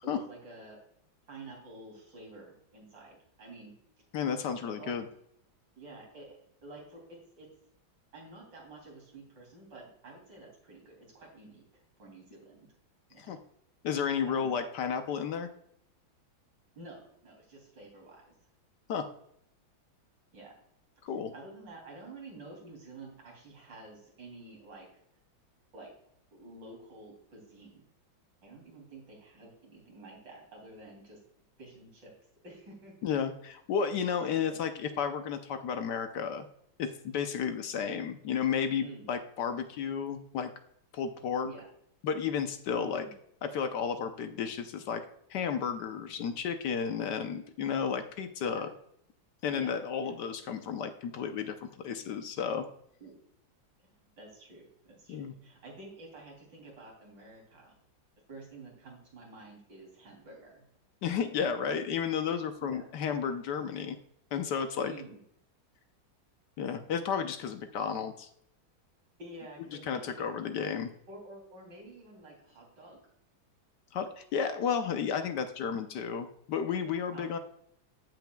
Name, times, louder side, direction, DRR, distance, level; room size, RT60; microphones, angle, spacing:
voice 1, 0.0-0.8 1.3-3.7 4.6-5.0 5.8-7.5 8.1-11.6 12.0-12.7 13.1-13.2 14.3-14.5 16.8-18.3 20.3-20.6 21.3-24.9 25.7-25.9 26.3-27.8 28.4-31.2 31.6-32.1 32.4-32.9 34.4-34.6 38.8-39.1 41.4-41.7 42.7-43.1 48.4-48.6 49.5-49.7 50.0-50.1 53.0-53.2 53.8-57.7 58.3-60.6 62.6-62.9 64.8-65.2 69.2-70.4 71.1-73.0 77.1-77.4, right 2 dB, 65° right, -1 dB, 3.8 m, -49 dB
voice 2, 4.1-5.1 13.2-13.4 13.8-15.5 18.9-19.1 21.0-21.3 33.0-36.5 36.8-40.5 40.9-41.5 42.0-43.0 43.5-45.0 45.3-48.7 49.4-52.7 55.1-55.3 61.0-64.0 64.3-64.9 66.6-68.3 69.8-70.9 73.9-77.4, left 7 dB, 65° left, 8 dB, 1.2 m, -32 dB
15.0 x 5.3 x 2.3 m, 0.72 s
omnidirectional pair, 2.2 m